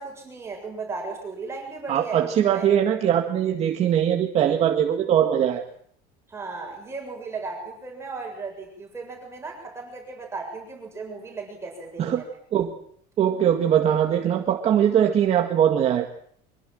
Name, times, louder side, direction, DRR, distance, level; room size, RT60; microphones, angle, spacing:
voice 1, 0.0-2.7 6.3-12.3, right 4 dB, 15° right, 1 dB, 7.4 m, -36 dB
voice 2, 1.9-5.6 12.0-12.2 12.5-12.7 13.2-16.1, right 9 dB, 30° right, 3 dB, 2.0 m, -21 dB
25.0 x 23.0 x 7.8 m, 0.63 s
cardioid pair, 170°, 20 cm